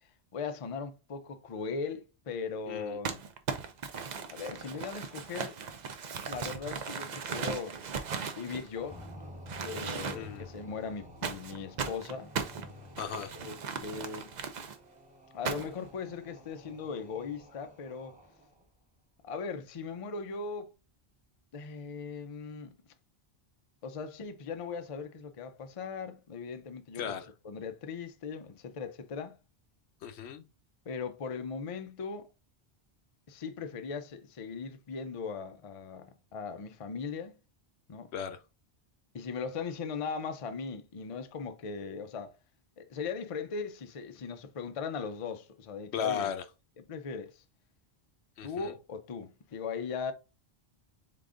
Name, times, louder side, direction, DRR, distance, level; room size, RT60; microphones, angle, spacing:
voice 1, 0.3-3.2 4.3-5.6 6.3-7.8 8.3-9.0 9.6-12.3 13.4-14.3 15.3-18.2 19.2-20.7 21.5-22.7 23.8-27.2 27.4-29.4 30.9-32.3 33.3-37.4 37.9-38.1 39.1-42.3 42.8-46.3 46.8-47.4 48.4-50.1, left 5 dB, 45° left, 0.5 m, -39 dB
voice 2, 2.7-3.0 10.1-10.5 13.0-13.3 26.9-27.3 30.0-30.4 38.1-38.4 45.9-46.4 48.4-48.7, left 8 dB, 85° left, 0.9 m, -35 dB
Crumpling crinkling, 3.0-9.1 9.5-10.4 11.2-14.8 15.4-15.9, right 6 dB, 50° right, 0.6 m, -37 dB
sound 1, 8.8-18.6, left 1 dB, 10° right, 1.3 m, -51 dB
3.8 x 3.8 x 3.6 m
omnidirectional pair, 1.1 m